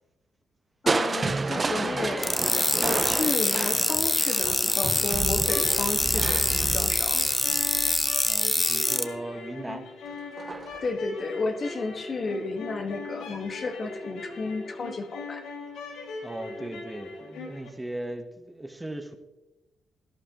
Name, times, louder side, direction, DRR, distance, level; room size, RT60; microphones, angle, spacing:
voice 1, 0.8-2.4 2.8-7.2 10.8-15.5, left 3 dB, 40° left, 6 dB, 1.6 m, -32 dB
Crushing, 0.9-8.8 10.4-10.9 11.4-11.5, right 3 dB, 30° right, 0.6 m, -31 dB
sound 1, 2.2-9.0, left 2 dB, 15° left, 0.8 m, -25 dB
sound 2, 5.5-17.7, left 3 dB, 90° left, 2.6 m, -40 dB
voice 2, 8.2-9.9 16.2-19.2, right 1 dB, 10° right, 6 dB, 1.1 m, -37 dB
17.5 x 11.0 x 3.0 m, 1.0 s
cardioid pair, 90°, 0 cm